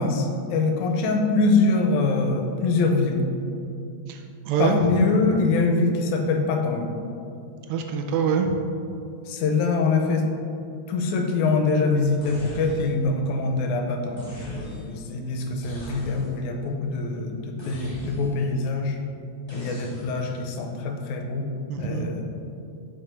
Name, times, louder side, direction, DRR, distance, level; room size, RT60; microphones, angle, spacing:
voice 1, 0.0-3.2 4.6-6.9 9.3-10.3 10.9-19.0 19.5-21.5 21.8-22.2, left 3 dB, 80° left, 3 dB, 2.1 m, -24 dB
voice 2, 4.1-5.0 7.7-8.6 21.7-22.1, right 6 dB, 80° right, 3 dB, 1.7 m, -25 dB
sound 1, 12.2-13.1 14.2-15.0 15.6-16.5 17.6-18.5 19.5-20.4, left 1 dB, 35° left, 0.4 m, -40 dB
6.7 x 5.0 x 4.4 m, 2.6 s
omnidirectional pair, 3.4 m